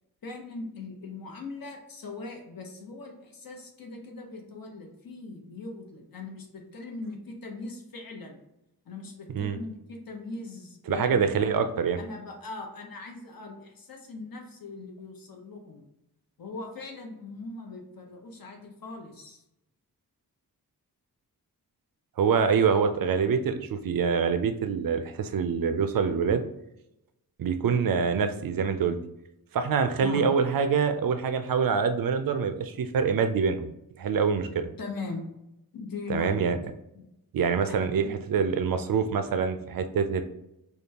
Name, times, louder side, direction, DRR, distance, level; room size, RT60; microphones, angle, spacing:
voice 1, 0.2-8.4 8.8-11.2 12.0-15.8 16.4-19.4 30.0-30.3 34.8-35.2 35.7-36.6 36.9-37.0 37.6-38.2, left 3 dB, 65° left, 1 dB, 1.0 m, -40 dB
voice 2, 10.9-12.0 22.2-26.4 27.4-29.0 29.5-33.7 34.0-34.7 36.1-36.6 37.3-40.2, right 6 dB, 65° right, 9 dB, 0.5 m, -25 dB
5.1 x 2.3 x 2.8 m, 0.85 s
wide cardioid pair, 150°, 38 cm